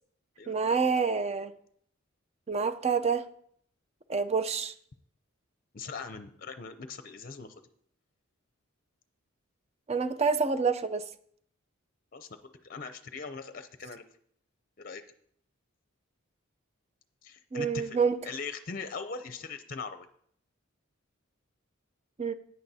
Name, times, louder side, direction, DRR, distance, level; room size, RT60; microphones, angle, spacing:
voice 1, 0.5-1.5 2.5-3.3 4.1-4.7 9.9-11.0 17.5-18.2 22.2-22.3, right 5 dB, 30° right, 0.6 m, -27 dB
voice 2, 5.7-7.5 12.1-14.0 14.8-15.0 17.2-18.0 18.2-20.1, left 4 dB, 45° left, 0.6 m, -40 dB
16.0 x 9.5 x 2.8 m
head